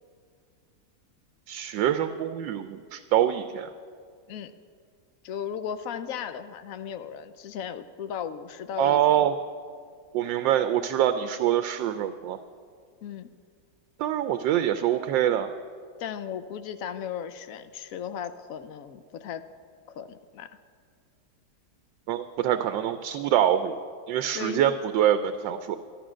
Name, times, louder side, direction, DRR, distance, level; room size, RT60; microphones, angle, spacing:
voice 1, 1.5-3.7 8.8-9.3 10.1-12.4 14.0-15.5 22.1-23.7 24.1-25.8, right 11 dB, 80° right, 10 dB, 1.2 m, -25 dB
voice 2, 5.2-9.2 13.0-13.3 16.0-19.4 19.9-20.5 24.3-24.8, left 8 dB, 70° left, 11 dB, 0.8 m, -36 dB
13.5 x 12.0 x 6.2 m, 2.1 s
omnidirectional pair, 2.1 m